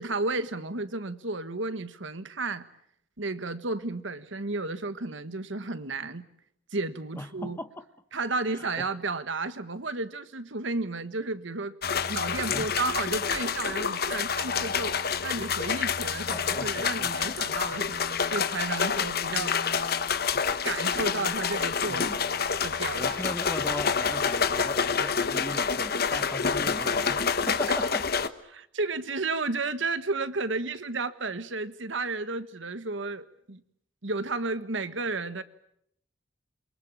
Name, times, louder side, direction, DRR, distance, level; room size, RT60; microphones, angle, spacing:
voice 1, 0.0-2.7 3.2-6.2 6.7-7.6 8.1-11.7 12.1-14.9 15.2-19.8 20.6-22.2 22.6-23.2 28.5-33.6 34.0-35.4, right 3 dB, 70° right, 1.5 m, -32 dB
voice 2, 7.1-7.8 8.5-8.9 12.5-12.7 16.3-17.5 19.0-19.1 21.9-22.2 22.9-28.1, left 1 dB, 10° left, 1.0 m, -38 dB
sound 1, 11.8-28.3, left 6 dB, 50° left, 1.1 m, -28 dB
28.0 x 24.0 x 8.8 m
head